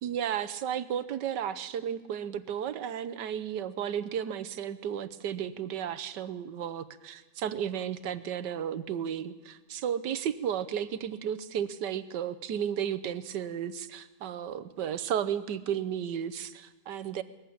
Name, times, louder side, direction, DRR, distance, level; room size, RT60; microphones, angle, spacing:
voice 1, 0.0-17.2, right 9 dB, 90° right, 12 dB, 1.5 m, -33 dB
21.0 x 14.5 x 8.6 m, 1.1 s
omnidirectional pair, 1.8 m